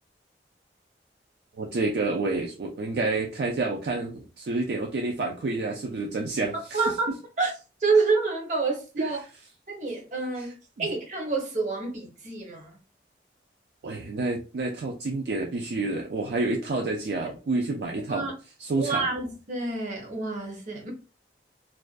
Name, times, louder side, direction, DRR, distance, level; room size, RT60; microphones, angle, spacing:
voice 1, 1.6-6.8 9.0-9.1 10.8-10.9 13.8-18.3 18.6-19.1, right 3 dB, 65° right, 0.4 m, -29 dB
voice 2, 6.7-7.5 7.8-9.2 9.7-12.8 18.1-18.3 18.8-20.9, right 4 dB, 45° right, 0.7 m, -28 dB
2.4 x 2.2 x 2.3 m
head